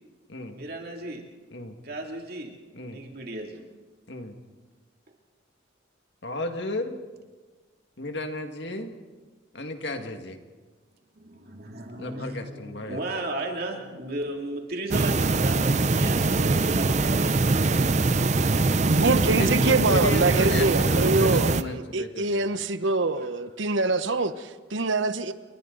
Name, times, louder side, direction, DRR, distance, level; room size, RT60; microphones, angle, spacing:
voice 1, 0.5-1.3 1.8-2.6 2.9-3.6 11.1-17.6 18.1-19.2 22.5-22.6 23.2-23.3, right 2 dB, 50° right, 2.8 m, -35 dB
voice 2, 6.2-7.0 8.0-9.0 9.5-10.4 12.0-13.0 19.4-22.5, left 2 dB, 65° left, 2.0 m, -33 dB
sound 1, 14.9-21.6, right 3 dB, 35° right, 0.6 m, -23 dB
voice 3, 18.9-25.3, right 3 dB, 80° right, 1.0 m, -25 dB
29.5 x 22.5 x 4.0 m
head